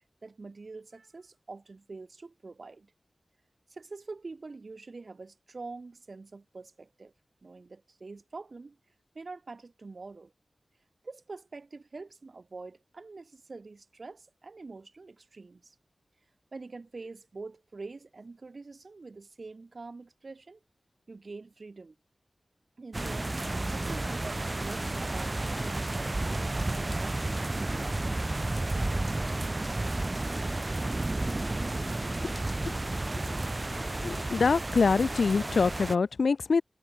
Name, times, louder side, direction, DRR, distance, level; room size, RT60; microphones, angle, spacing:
voice 1, 0.2-2.9 3.7-7.1 7.4-8.8 9.1-10.3 11.0-15.7 16.5-20.6 21.1-22.0 22.8-28.2, right 3 dB, 60° right, 4.5 m, -45 dB
sound 1, 22.9-36.0, right 2 dB, 30° right, 4.9 m, -32 dB
voice 2, 34.0-36.6, left 4 dB, 85° left, 0.5 m, -25 dB
wide cardioid pair, 70°, 0 cm